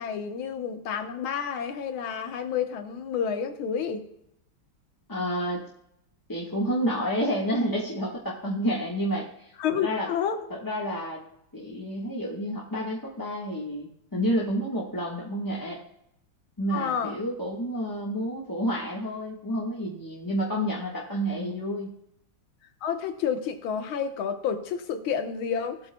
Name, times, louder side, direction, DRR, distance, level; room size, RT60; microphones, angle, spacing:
voice 1, 0.0-4.1 9.6-10.4 16.7-17.1 22.8-25.8, left 7 dB, 80° left, 7 dB, 1.8 m, -29 dB
voice 2, 5.1-5.6 6.3-10.1 10.5-11.2 11.5-15.8 16.6-21.9, equal, 10° left, -4 dB, 1.0 m, -29 dB
17.5 x 8.4 x 2.2 m, 0.78 s
omnidirectional pair, 2.3 m